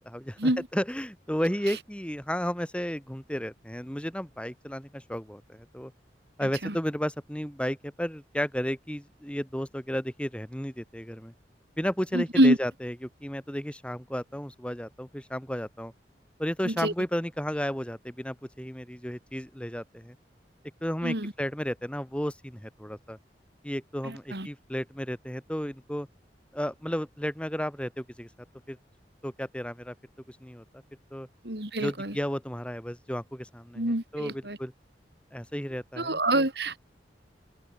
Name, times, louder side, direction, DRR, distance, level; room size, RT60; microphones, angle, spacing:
voice 1, 0.1-5.9 6.4-11.3 11.8-15.9 16.4-20.2 20.8-23.2 23.6-26.1 26.5-28.3 28.7-28.8 29.2-29.9 30.3-30.6 31.1-31.3 31.8-34.7 35.3-36.5, equal, 5° left, 2.9 m, -33 dB
voice 2, 6.4-6.8 12.1-12.6 16.6-16.9 21.0-21.3 24.0-24.5 31.4-32.2 33.8-34.6 36.0-36.8, right 1 dB, 70° right, 5.2 m, -26 dB
head